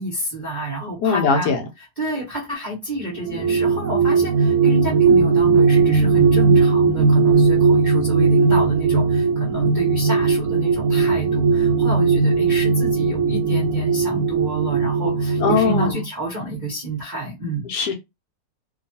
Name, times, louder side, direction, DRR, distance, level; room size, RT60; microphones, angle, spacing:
voice 1, 0.0-1.5 2.0-17.7, right 1 dB, 40° right, 0.6 m, -29 dB
voice 2, 1.0-1.6 15.4-16.0 17.7-17.9, left 5 dB, 70° left, 1.1 m, -20 dB
sound 1, 3.1-15.9, right 4 dB, 80° right, 0.7 m, -18 dB
2.9 x 2.3 x 2.7 m
omnidirectional pair, 2.0 m